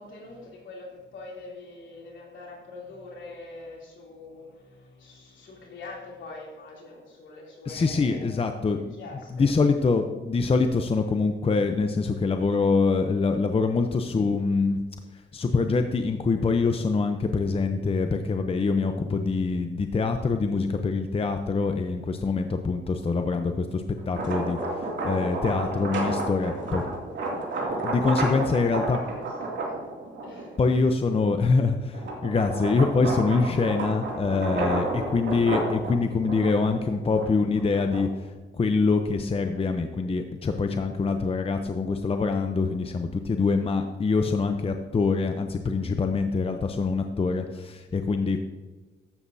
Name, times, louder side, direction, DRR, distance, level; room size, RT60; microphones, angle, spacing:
voice 1, 0.0-8.3 8.8-9.4 27.6-27.8 28.1-29.8 30.2-30.6, left 3 dB, 70° left, -2 dB, 3.0 m, -44 dB
voice 2, 7.7-9.0 9.3-14.8 15.3-26.9 27.8-29.0 30.6-38.3 38.5-48.4, left 4 dB, 30° left, 6 dB, 0.6 m, -25 dB
Bass guitar, 17.5-23.7, right 1 dB, 10° left, 2.1 m, -43 dB
sound 1, 24.0-30.6 31.1-38.3, right 2 dB, 65° right, 2.6 m, -31 dB
12.5 x 8.3 x 2.7 m, 1.2 s
cardioid pair, 85°, 20 cm